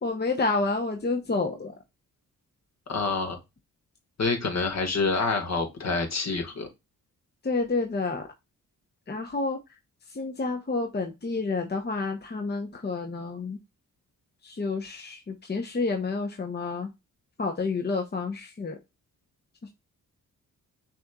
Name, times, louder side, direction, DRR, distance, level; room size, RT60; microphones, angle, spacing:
voice 1, 0.0-1.7 7.4-8.3 9.1-9.6 10.1-13.6 14.4-16.9 17.4-18.8 19.6-19.7, left 3 dB, 30° left, 4 dB, 0.9 m, -29 dB
voice 2, 2.9-3.4 4.2-6.7, left 4 dB, 50° left, 4 dB, 1.6 m, -27 dB
6.1 x 3.1 x 2.3 m, 0.23 s
cardioid pair, 60°, 34 cm